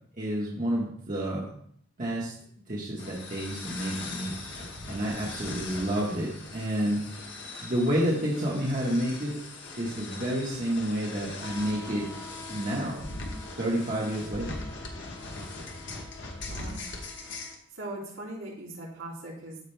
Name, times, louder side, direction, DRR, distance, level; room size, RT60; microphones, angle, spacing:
voice 1, 0.2-1.5 2.0-2.3 2.7-7.0 7.6-9.3 9.8-12.1 12.5-13.1 13.6-14.6, right 1 dB, 40° right, -5 dB, 1.3 m, -30 dB
sound 1, 3.0-17.6, left 3 dB, 60° left, 1.2 m, -40 dB
voice 2, 16.5-16.8 17.7-19.6, right 1 dB, 75° right, -5 dB, 3.1 m, -40 dB
14.5 x 5.0 x 2.2 m, 0.64 s
head